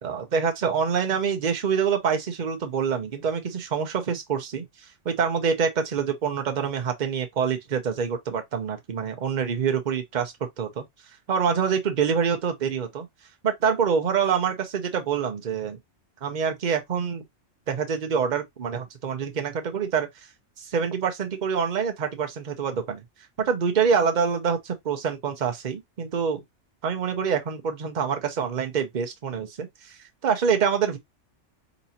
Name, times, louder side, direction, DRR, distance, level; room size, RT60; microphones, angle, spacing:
voice 1, 0.0-10.9 11.3-13.1 13.4-15.8 16.2-17.2 17.7-20.1 20.6-23.0 23.4-26.4 26.8-30.0 30.2-31.0, right 6 dB, 45° right, 0.8 m, -26 dB
4.0 x 3.0 x 2.7 m
omnidirectional pair, 1.2 m